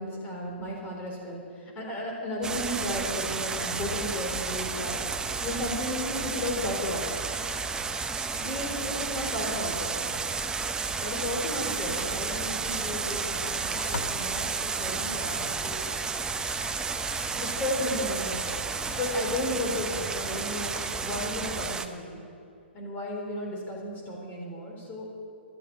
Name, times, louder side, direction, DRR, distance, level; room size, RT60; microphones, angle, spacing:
voice 1, 0.0-7.1 8.3-9.9 11.0-15.8 17.4-18.4 18.9-20.7 21.0-22.2 22.7-25.1, left 1 dB, 25° left, 0 dB, 4.0 m, -34 dB
sound 1, 2.4-21.9, right 4 dB, 10° right, 0.7 m, -32 dB
sound 2, 11.9-12.3 13.3-14.3 16.3-17.4 18.3-19.2 20.3-21.4, left 4 dB, 75° left, 1.0 m, -43 dB
12.5 x 9.9 x 8.6 m, 2.6 s
hypercardioid pair, 125°, 6 cm